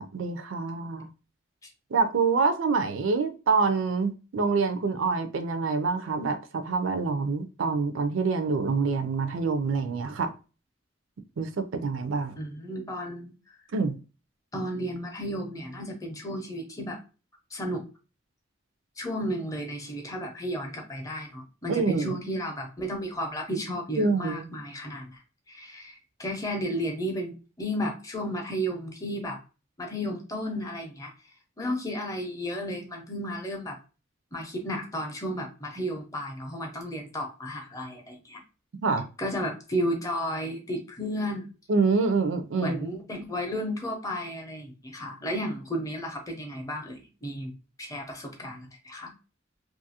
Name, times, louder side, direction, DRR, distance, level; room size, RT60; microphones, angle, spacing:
voice 1, 0.1-1.1 1.9-10.3 11.4-12.3 13.7-13.9 21.7-22.1 24.0-24.5 38.8-39.1 41.7-42.8, right 4 dB, 70° right, 0.4 m, -26 dB
voice 2, 12.4-13.3 14.5-17.0 17.5-17.8 19.0-25.1 25.5-29.4 29.8-31.1 31.6-33.8 34.3-38.4 39.2-41.5 42.6-47.5 47.8-49.1, equal, 15° left, 0.5 m, -33 dB
2.6 x 2.4 x 2.7 m
head